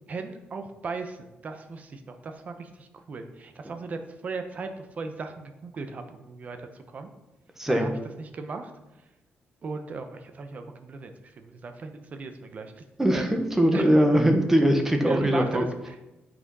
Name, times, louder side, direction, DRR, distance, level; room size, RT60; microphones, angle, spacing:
voice 1, 0.1-7.1 7.7-7.9 8.2-8.7 9.6-12.8 13.1-13.3 13.7-14.0 15.1-16.0, right 4 dB, 40° right, 7 dB, 1.0 m, -36 dB
voice 2, 7.6-7.9 13.0-15.6, equal, 10° right, 5 dB, 1.1 m, -21 dB
9.2 x 6.2 x 5.4 m, 0.98 s
cardioid pair, 145°, 4 cm